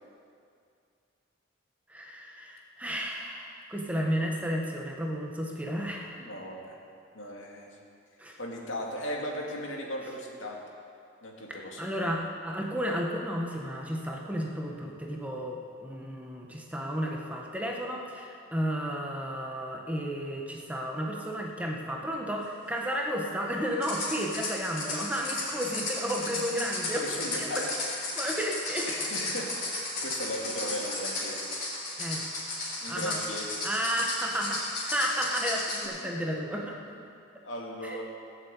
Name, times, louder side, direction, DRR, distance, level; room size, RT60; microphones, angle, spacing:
voice 1, 1.9-6.2 8.2-8.4 11.8-27.0 27.4-27.6 28.2-28.9 32.0-32.2 32.9-33.2 33.6-37.0 37.8-38.0, equal, 5° right, 0 dB, 1.2 m, -32 dB
voice 2, 6.2-6.8 7.1-7.7 8.4-10.6 11.2-12.2 27.0-27.7 28.2-28.4 28.9-31.4 32.8-33.5 37.4-38.0, equal, 80° left, -1 dB, 2.2 m, -37 dB
sound 1, 23.8-35.9, left 2 dB, 45° left, 3.6 m, -34 dB
16.5 x 7.3 x 8.2 m, 2.4 s
head